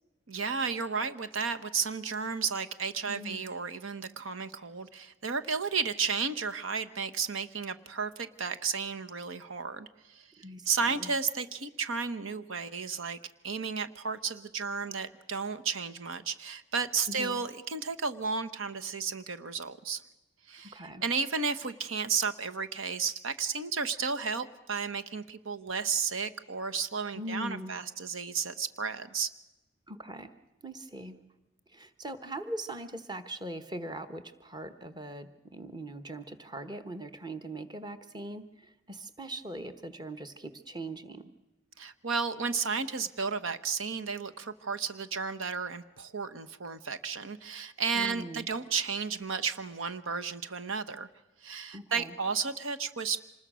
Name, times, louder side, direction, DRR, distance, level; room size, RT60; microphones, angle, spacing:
voice 1, 0.3-10.3 10.7-13.2 13.4-20.0 20.5-29.3 41.8-51.1 51.4-53.2, right 5 dB, 90° right, 10 dB, 1.0 m, -33 dB
voice 2, 3.1-3.4 10.4-11.1 17.1-17.4 20.7-21.0 27.1-27.8 29.9-30.3 30.6-31.2 31.7-41.3 47.9-48.5 51.7-52.2, right 1 dB, 20° right, 9 dB, 1.1 m, -41 dB
26.0 x 20.5 x 6.2 m, 1.0 s
head